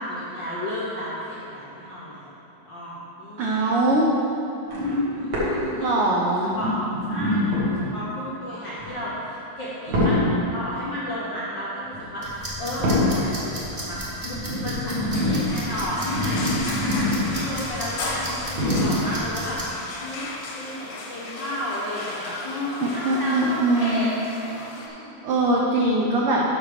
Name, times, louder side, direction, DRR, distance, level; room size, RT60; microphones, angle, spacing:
voice 1, 0.0-2.4 2.6-3.9 5.1-6.7 7.0-19.6 20.0-24.1 24.4-25.1, equal, 65° left, -8 dB, 1.1 m, -33 dB
voice 2, 3.4-4.1 5.8-6.5 22.8-24.1 25.2-26.4, right 2 dB, 85° right, -3 dB, 1.2 m, -22 dB
sound 1, 4.7-6.0 6.5-8.0 8.8-9.1 9.9-10.6 11.8-12.1 12.8-13.5 14.2-17.5 17.7-17.8 18.5-19.3 20.1-20.2, left 1 dB, 60° right, 2.6 m, -25 dB
sound 2, 12.2-19.6, equal, 30° right, 0.8 m, -34 dB
sound 3, 15.1-24.9, left 3 dB, 80° left, 2.5 m, -35 dB
7.3 x 5.5 x 6.5 m, 3.0 s
omnidirectional pair, 3.5 m